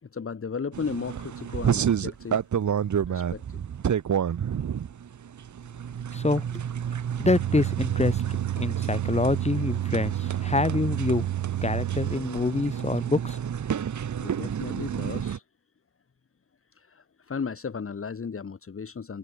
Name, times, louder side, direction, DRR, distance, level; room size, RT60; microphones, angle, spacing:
voice 1, 0.0-2.4 3.1-3.6 14.2-15.4 16.7-19.2, left 5 dB, 30° left, 2.6 m, -35 dB
sound 1, 0.7-15.4, right 8 dB, 45° right, 1.2 m, -30 dB
voice 2, 6.1-6.5 7.2-8.2 8.6-11.3 11.6-13.4, left 2 dB, 15° left, 4.2 m, -26 dB
sound 2, 7.2-12.1, right 13 dB, 85° right, 1.1 m, -30 dB
wide cardioid pair, 160°, 43 cm